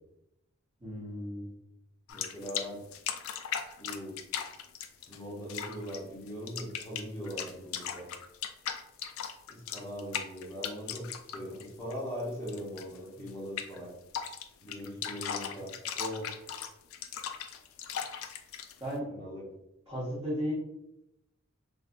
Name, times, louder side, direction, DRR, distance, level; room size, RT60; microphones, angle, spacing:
voice 1, 0.8-1.5 13.2-13.3 16.0-16.4 18.8-19.1 19.9-20.5, equal, 15° right, -11 dB, 1.0 m, -35 dB
sound 1, 2.1-2.7 2.9-5.2 5.5-6.0 6.3-12.2 12.5-13.0 13.3-13.4 13.6-13.8 14.1-18.8, left 8 dB, 70° left, 0.3 m, -37 dB
voice 2, 2.1-2.8 3.8-4.2 5.1-8.1 9.5-13.9 14.6-15.7 19.1-19.4, equal, 15° left, -5 dB, 0.9 m, -40 dB
3.3 x 2.6 x 2.5 m, 0.85 s
head